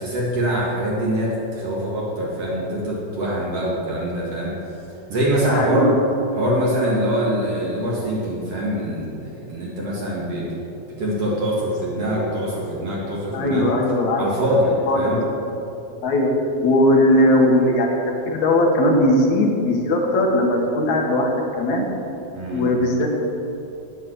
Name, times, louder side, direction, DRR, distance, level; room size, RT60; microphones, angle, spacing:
voice 1, 0.0-4.5 5.1-5.9 6.3-10.6 11.0-13.7 14.2-15.2 22.3-22.7, equal, 55° right, -5 dB, 2.8 m, -23 dB
voice 2, 5.5-6.0 13.3-14.2 14.9-15.6 16.0-16.3 16.6-17.9 18.3-21.9 22.5-23.2, left 1 dB, 70° left, 0 dB, 2.7 m, -19 dB
9.7 x 9.1 x 7.5 m, 2.8 s
omnidirectional pair, 3.4 m